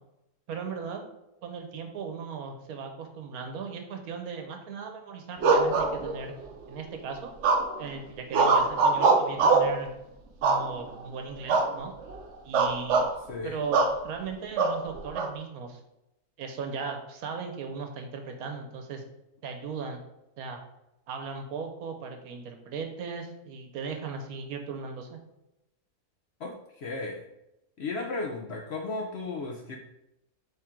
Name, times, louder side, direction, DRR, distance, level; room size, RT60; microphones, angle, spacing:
voice 1, 0.5-1.0 1.4-6.3 6.7-7.3 7.8-9.9 10.4-11.9 12.4-13.0 13.4-15.8 16.4-19.0 19.4-20.0 20.4-20.6 21.1-25.2, right 5 dB, 80° right, 4 dB, 1.2 m, -37 dB
sound 1, 5.4-6.4 7.4-7.9 8.3-9.8 10.4-11.0 11.5-11.7 12.0-12.2 12.5-13.1 13.7-14.0 14.6-15.3, right 4 dB, 65° right, 0.8 m, -23 dB
voice 2, 13.3-13.6 26.4-27.2 27.8-29.8, left 3 dB, 65° left, 2 dB, 0.6 m, -35 dB
3.6 x 3.4 x 4.4 m, 0.88 s
omnidirectional pair, 1.6 m